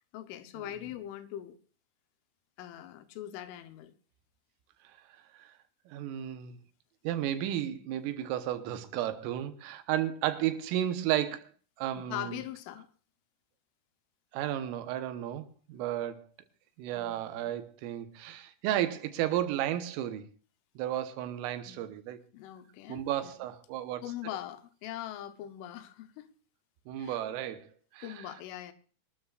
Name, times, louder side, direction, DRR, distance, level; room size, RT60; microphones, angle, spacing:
voice 1, 0.1-1.6 2.6-3.9 12.0-12.9 16.9-17.5 21.7-21.8 22.3-23.3 24.0-26.3 27.0-27.2 28.0-28.7, left 12 dB, 80° left, 3.3 m, -42 dB
voice 2, 5.9-6.6 7.1-11.5 11.8-12.4 14.3-16.3 16.8-20.3 20.8-22.2 22.9-24.0 26.9-27.7 27.9-28.2, right 12 dB, 90° right, 3.6 m, -33 dB
24.5 x 13.0 x 2.4 m
omnidirectional pair, 5.7 m